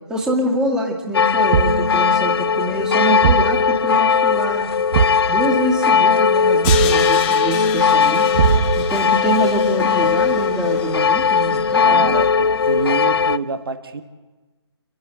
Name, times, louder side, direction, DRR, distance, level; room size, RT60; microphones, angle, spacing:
voice 1, 0.1-4.7 5.3-8.3 8.8-12.2, right 1 dB, 5° right, -1 dB, 2.1 m, -25 dB
sound 1, 1.1-13.4, left 6 dB, 60° left, 0.5 m, -18 dB
Thump thud, 1.5-1.9 3.2-3.6 4.9-5.3 6.6-7.0 8.3-8.9, right 6 dB, 35° right, 0.8 m, -18 dB
Crash cymbal, 6.6-11.7, left 9 dB, 15° left, 1.4 m, -31 dB
voice 2, 11.8-14.0, right 4 dB, 55° right, 8 dB, 1.4 m, -27 dB
29.5 x 11.5 x 8.1 m, 1.3 s
figure-of-eight pair, 150°, 15 cm